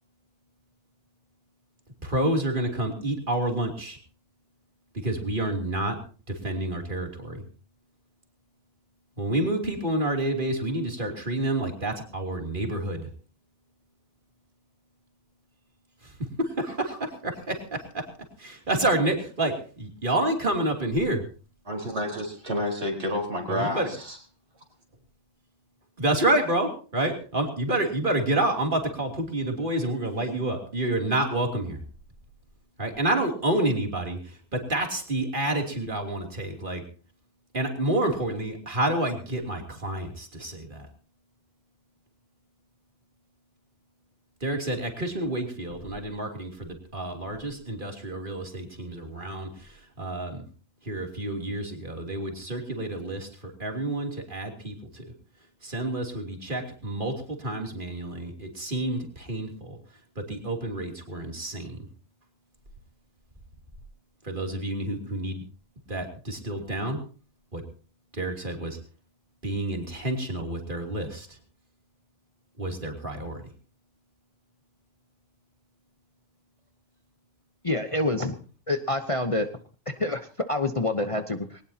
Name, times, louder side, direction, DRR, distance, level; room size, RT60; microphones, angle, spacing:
voice 1, 2.0-4.0 5.0-6.0 6.3-7.4 9.2-13.1 16.0-18.1 18.4-21.2 23.5-23.9 26.0-31.8 32.8-36.8 37.5-40.9 44.4-50.4 50.8-55.1 55.6-59.8 60.1-61.9 64.2-65.4 65.9-67.0 67.5-67.6 68.1-68.8 69.4-71.4 72.6-73.5, right 1 dB, 40° right, 2 dB, 3.3 m, -29 dB
voice 2, 21.7-24.2, left 1 dB, 55° right, 0 dB, 4.7 m, -30 dB
voice 3, 77.6-78.4 78.7-79.5 79.9-81.6, left 2 dB, 30° left, 7 dB, 1.0 m, -27 dB
21.5 x 19.0 x 2.9 m, 0.37 s
omnidirectional pair, 1.3 m